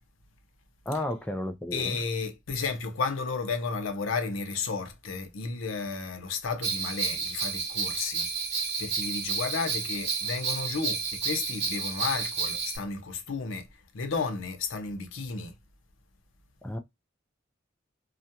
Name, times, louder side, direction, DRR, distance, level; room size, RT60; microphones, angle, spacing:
voice 1, 0.9-2.0 16.6-16.8, left 1 dB, 5° left, 0.3 m, -32 dB
voice 2, 1.7-8.3 8.8-13.7 13.9-15.5, left 4 dB, 80° left, 0.6 m, -33 dB
Bell, 6.6-12.8, right 5 dB, 60° right, 0.9 m, -31 dB
2.4 x 2.2 x 2.7 m
head